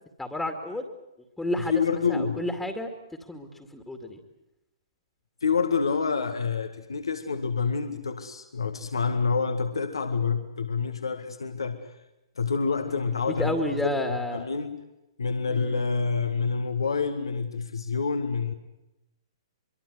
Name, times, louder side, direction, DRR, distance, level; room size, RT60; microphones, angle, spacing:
voice 1, 0.2-0.8 1.4-1.7 2.1-2.9 3.3-4.2 12.9-14.5 15.5-15.8, left 1 dB, 5° left, 5 dB, 2.4 m, -31 dB
voice 2, 1.6-2.4 5.4-11.8 12.4-14.8 15.2-18.5, left 5 dB, 70° left, 8 dB, 1.8 m, -27 dB
25.0 x 24.0 x 8.0 m, 0.93 s
figure-of-eight pair, 115°, 3 cm